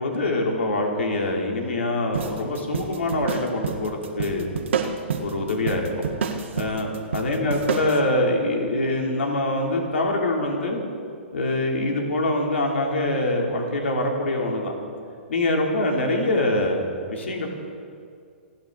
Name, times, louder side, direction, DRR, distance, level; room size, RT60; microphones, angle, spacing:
voice 1, 0.0-4.5 5.2-5.8 6.5-10.8 11.3-14.7 15.3-17.5, left 1 dB, 80° left, 0 dB, 3.1 m, -24 dB
sound 1, 2.1-8.0, right 6 dB, 75° right, 1.7 m, -29 dB
29.5 x 10.5 x 3.9 m, 2.3 s
hypercardioid pair, 125°, 7 cm